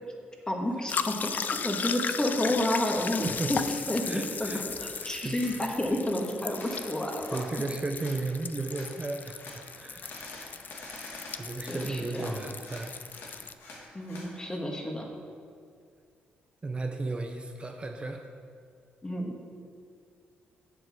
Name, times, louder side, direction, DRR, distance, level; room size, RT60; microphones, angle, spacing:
voice 1, 0.5-3.2 3.5-3.6 3.9-7.3 10.0-10.1 11.6-12.4 13.9-15.1 19.0-19.3, left 1 dB, 20° left, 1 dB, 1.8 m, -30 dB
sound 1, 0.9-13.5, left 6 dB, 50° left, 0.5 m, -36 dB
voice 2, 3.2-3.5 3.8-4.6 5.0-5.6 7.3-10.0 10.3-10.5 11.0-11.1 11.4-13.0 16.6-18.3, right 3 dB, 30° right, 3 dB, 0.7 m, -35 dB
sound 2, 3.5-3.7 4.1-4.9 5.1-5.5 6.5-6.9 7.2-7.5 8.0-8.2 8.7-8.9 9.4-9.6 10.0-12.4 12.6-14.3, left 2 dB, 70° left, 2.3 m, -46 dB
8.0 x 7.7 x 6.4 m, 2.2 s
cardioid pair, 75°, 4 cm